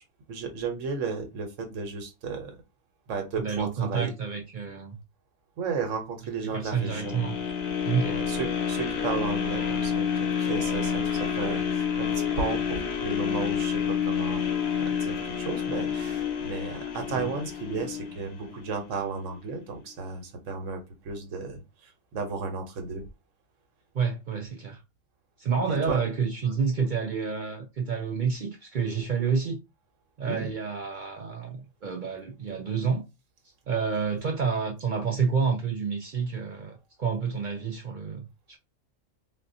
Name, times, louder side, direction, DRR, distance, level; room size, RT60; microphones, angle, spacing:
voice 1, 0.3-2.5 3.1-4.1 5.6-7.2 8.1-14.4 14.8-23.0 25.7-26.0 30.3-30.5, right 4 dB, 80° right, 1.2 m, -34 dB
voice 2, 3.4-5.0 6.4-7.4 7.8-8.2 17.2-17.3 23.9-24.8 25.4-29.6 30.2-33.0 33.7-38.6, right 6 dB, 55° right, 0.5 m, -29 dB
sound 1, 6.7-18.8 19.3-19.4, left 7 dB, 60° left, 0.9 m, -29 dB
4.1 x 2.1 x 2.6 m
omnidirectional pair, 1.3 m